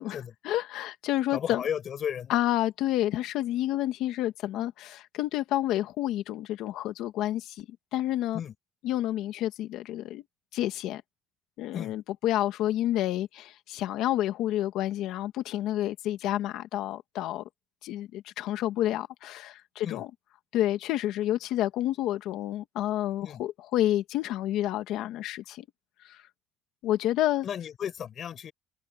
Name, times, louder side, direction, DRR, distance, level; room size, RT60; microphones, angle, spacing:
voice 1, 0.4-1.6 2.3-7.7 7.9-8.4 8.8-10.2 10.5-11.0 11.6-17.4 17.8-20.1 20.5-25.7 26.0-26.2 26.8-27.5, left 13 dB, 60° left, 1.8 m, -29 dB
voice 2, 1.3-2.4 8.3-8.5 11.7-11.9 19.8-20.1 23.2-23.4 27.4-28.5, left 8 dB, 35° left, 6.0 m, -34 dB
cardioid pair, 175°, 0 cm